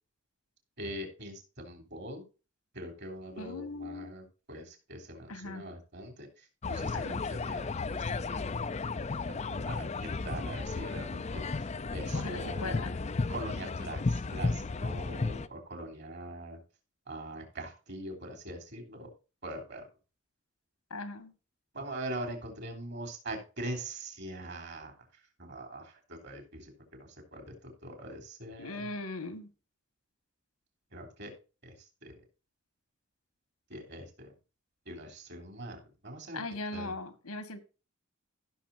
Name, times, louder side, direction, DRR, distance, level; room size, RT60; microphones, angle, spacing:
voice 1, 0.8-2.2 2.7-8.5 8.8-12.8 13.3-16.6 17.1-19.1 19.4-19.8 21.7-24.9 25.4-28.9 30.9-31.3 31.6-32.2 33.7-34.3 34.9-36.4 36.7-37.0, right 1 dB, 50° right, 4 dB, 3.5 m, -43 dB
voice 2, 3.4-4.1 5.3-5.6 6.9-7.2 12.1-13.0 20.9-21.3 28.6-29.5 36.3-37.6, left 2 dB, 90° left, 10 dB, 1.8 m, -39 dB
sound 1, 6.6-15.5, left 3 dB, 30° left, 0.5 m, -34 dB
16.0 x 6.6 x 2.6 m, 0.33 s
head